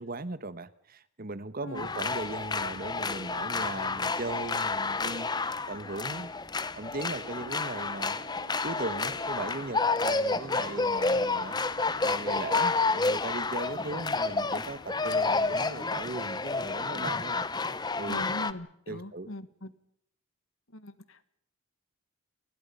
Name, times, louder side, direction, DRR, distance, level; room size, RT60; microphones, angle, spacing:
voice 1, 0.0-6.3 6.8-8.2 8.6-11.6 12.0-17.5 18.0-18.2 18.9-19.3, right 2 dB, 45° right, 15 dB, 1.2 m, -38 dB
sound 1, 1.8-18.5, left 3 dB, 20° left, 0.8 m, -30 dB
Piano, 7.1-14.8, right 4 dB, 65° right, 3.4 m, -50 dB
voice 2, 18.1-19.7 20.7-21.2, left 1 dB, 65° left, 14 dB, 1.7 m, -40 dB
29.0 x 20.5 x 5.5 m, 0.70 s
head